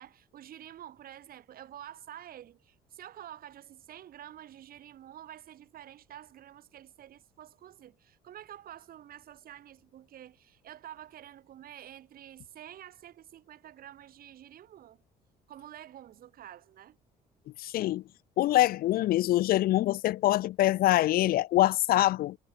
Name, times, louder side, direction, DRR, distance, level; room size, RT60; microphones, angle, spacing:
voice 1, 0.0-15.0 15.5-17.0, right 11 dB, 60° right, 3.4 m, -49 dB
voice 2, 17.6-18.0 18.4-22.4, left 15 dB, 60° left, 0.4 m, -24 dB
cardioid pair, 110°, 17 cm